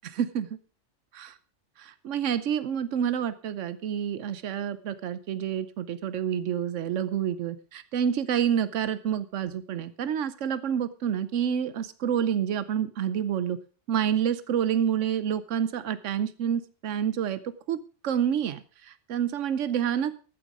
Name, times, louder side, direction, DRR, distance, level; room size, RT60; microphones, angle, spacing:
voice 1, 0.0-0.5 1.1-1.3 1.8-13.6 13.9-20.2, right 9 dB, 90° right, 14 dB, 1.1 m, -28 dB
14.0 x 9.2 x 4.8 m, 0.38 s
omnidirectional pair, 1.2 m